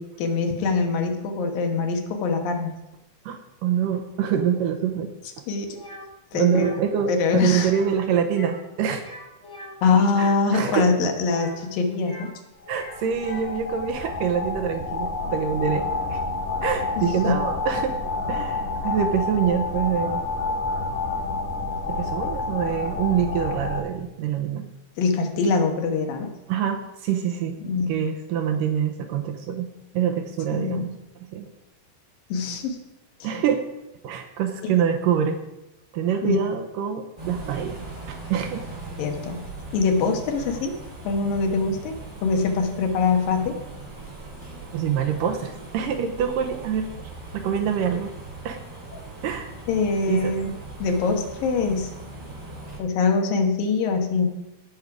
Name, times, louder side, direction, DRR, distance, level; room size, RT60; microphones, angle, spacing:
voice 1, 0.0-2.7 5.5-5.8 6.3-6.7 7.1-7.7 9.8-12.3 17.0-17.3 25.0-26.3 27.6-28.0 30.5-30.9 32.3-32.8 33.2-33.3 34.6-34.7 36.2-36.4 39.0-39.4 39.7-40.7 41.0-43.6 49.7-50.5 50.8-51.9 52.8-54.3, left 4 dB, 70° left, 4 dB, 2.8 m, -23 dB
voice 2, 3.3-5.1 6.3-9.1 10.2-10.9 12.7-16.2 16.6-18.0 18.3-20.2 21.9-24.7 26.5-27.6 27.9-29.7 29.9-30.9 31.3-31.5 33.2-33.6 34.0-35.4 35.9-38.8 44.7-46.9 47.3-48.1 48.4-48.6 49.2-49.5 50.1-50.4, right 8 dB, 75° right, 5 dB, 2.2 m, -25 dB
sound 1, 5.8-6.1 6.5-6.8 7.6-8.0 8.2-8.6 8.9-10.4 11.2-12.4 12.6-13.6, left 1 dB, 35° left, 1.1 m, -42 dB
sound 2, 12.7-23.8, left 3 dB, 90° left, 6.7 m, -29 dB
sound 3, 37.2-52.8, right 2 dB, 15° right, 3.1 m, -39 dB
17.5 x 6.4 x 4.8 m, 0.94 s
omnidirectional pair, 4.3 m